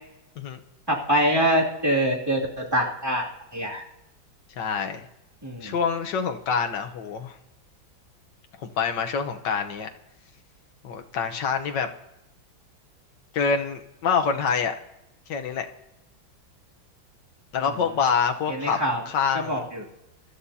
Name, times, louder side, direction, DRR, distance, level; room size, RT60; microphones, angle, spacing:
voice 1, 0.9-3.2 3.5-3.8 5.4-5.7 18.6-19.0 19.3-19.8, equal, 10° right, -4 dB, 2.5 m, -24 dB
voice 2, 4.6-5.1 5.6-7.4 8.6-9.9 10.8-11.9 13.3-14.7 15.3-15.7 17.5-18.8 19.1-19.6, left 6 dB, 65° left, 5 dB, 1.6 m, -26 dB
24.5 x 13.0 x 2.8 m, 0.89 s
omnidirectional pair, 2.2 m